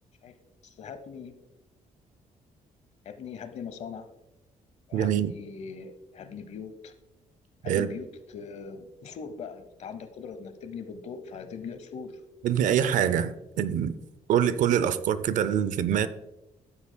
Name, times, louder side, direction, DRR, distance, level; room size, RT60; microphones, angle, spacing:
voice 1, 0.6-1.3 3.0-4.1 4.9-7.0 7.6-12.2, left 6 dB, 55° left, 0.8 m, -41 dB
voice 2, 4.9-5.3 7.7-7.9 12.4-13.9 14.3-16.1, right 9 dB, 70° right, 0.5 m, -24 dB
14.5 x 7.0 x 2.2 m
cardioid pair, 150°, 14 cm